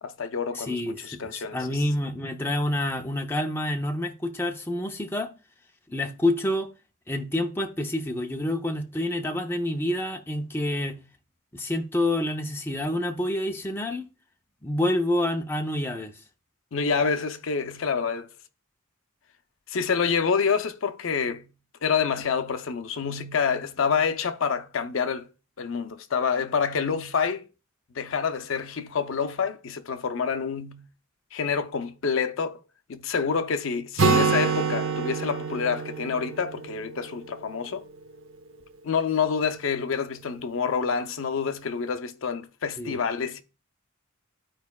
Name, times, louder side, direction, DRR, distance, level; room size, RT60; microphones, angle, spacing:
voice 1, 0.0-1.8 16.7-18.3 19.7-21.4 21.8-25.3 25.6-27.4 28.0-30.8 31.3-32.6 32.9-37.8 38.8-43.4, left 6 dB, 65° left, 0.5 m, -27 dB
voice 2, 0.5-5.3 5.9-6.7 7.1-11.0 11.5-14.1 14.6-16.1 42.8-43.0, left 1 dB, 10° left, 0.6 m, -28 dB
Acoustic guitar, 34.0-37.7, right 4 dB, 65° right, 0.8 m, -26 dB
14.0 x 4.7 x 2.2 m
head